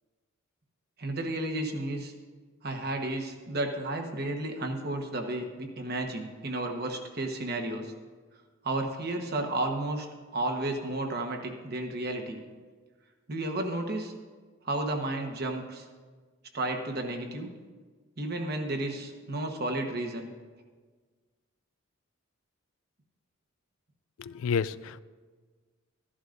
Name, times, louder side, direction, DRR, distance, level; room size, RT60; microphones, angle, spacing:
voice 1, 1.0-2.1 2.6-7.9 8.6-10.1 10.3-12.4 13.3-14.1 14.6-15.8 16.5-17.5 18.2-20.3, right 2 dB, 50° right, 4 dB, 1.1 m, -32 dB
voice 2, 24.2-25.0, left 6 dB, 80° left, 17 dB, 0.3 m, -30 dB
14.0 x 11.0 x 2.6 m, 1.4 s
head